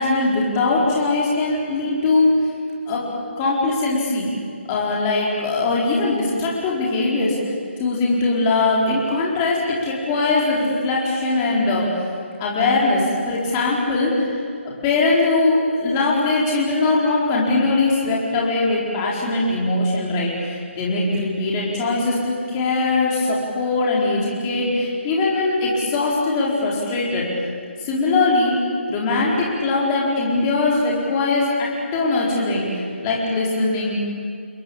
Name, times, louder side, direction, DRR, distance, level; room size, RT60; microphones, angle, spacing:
voice 1, 0.0-2.3 2.9-3.0 3.4-4.3 4.7-7.4 7.8-11.9 12.4-14.3 14.8-27.3 27.8-28.6 28.9-33.9, left 3 dB, 15° left, -4 dB, 4.4 m, -21 dB
29.5 x 21.0 x 8.7 m, 2.3 s
hypercardioid pair, 175°, 7 cm